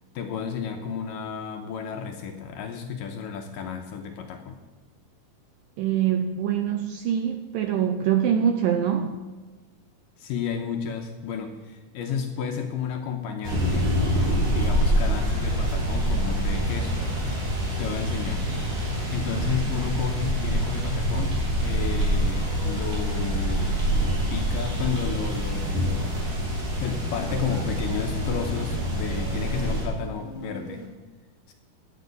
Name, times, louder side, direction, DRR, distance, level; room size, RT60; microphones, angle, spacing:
voice 1, 0.2-4.6 10.2-14.0 14.4-17.0 17.8-18.5 19.1-26.2 26.8-30.9 31.5-31.6, left 7 dB, 75° left, 4 dB, 2.2 m, -32 dB
voice 2, 5.8-9.2, right 9 dB, 80° right, 6 dB, 2.0 m, -24 dB
sound 1, 13.4-29.8, equal, 55° right, 4.3 m, -26 dB
sound 2, 14.0-30.9, equal, 20° right, 1.6 m, -46 dB
12.0 x 7.1 x 9.4 m, 1.2 s
omnidirectional pair, 4.6 m